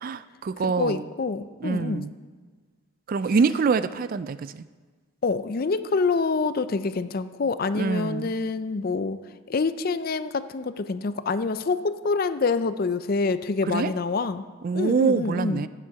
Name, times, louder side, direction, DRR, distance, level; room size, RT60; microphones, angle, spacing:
voice 1, 0.0-1.0 1.6-2.1 3.1-4.6 7.7-8.3 13.6-13.9 14.6-15.7, right 5 dB, 45° right, 14 dB, 0.3 m, -25 dB
voice 2, 0.6-2.1 5.2-9.2 9.5-14.4 14.7-15.7, left 4 dB, 45° left, 13 dB, 0.5 m, -26 dB
16.5 x 7.6 x 4.7 m, 1.5 s
head